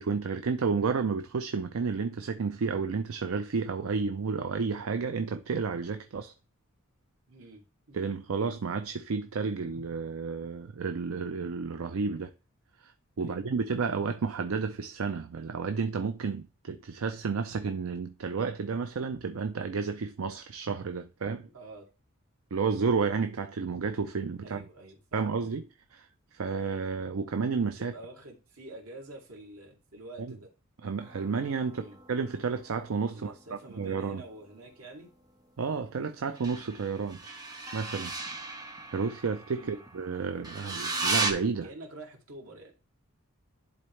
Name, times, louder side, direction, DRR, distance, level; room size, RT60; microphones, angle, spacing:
voice 1, 0.0-6.3 7.9-12.3 12.8-12.9 13.2-21.4 22.5-24.6 25.1-25.6 25.9-26.1 26.3-27.9 30.8-34.2 35.6-37.2 37.7-38.1 38.5-38.6 38.9-41.7, right 5 dB, 70° right, 0.5 m, -31 dB
voice 2, 7.3-8.1 13.2-13.4 21.5-21.8 24.4-25.4 27.8-30.5 31.7-32.0 33.1-35.1 39.5-39.8 40.6-40.9 41.6-42.7, right 2 dB, 85° right, 2.5 m, -47 dB
sound 1, 31.0-34.1 36.4-41.3, right 3 dB, 20° right, 1.2 m, -36 dB
10.5 x 3.9 x 3.2 m
head